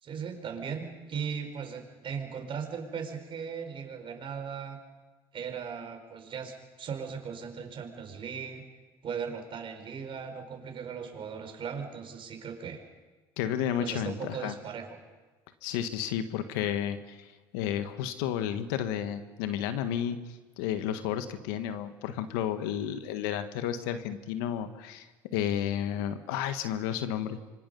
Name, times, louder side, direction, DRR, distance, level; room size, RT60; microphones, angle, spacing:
voice 1, 0.0-4.8 5.3-8.6 9.0-12.8 13.8-15.0, right 6 dB, 50° right, 5 dB, 4.7 m, -38 dB
voice 2, 13.4-14.5 15.6-20.2 20.6-27.4, left 10 dB, 80° left, 9 dB, 1.6 m, -32 dB
26.0 x 24.5 x 5.5 m, 1.3 s
hypercardioid pair, 75°, 12 cm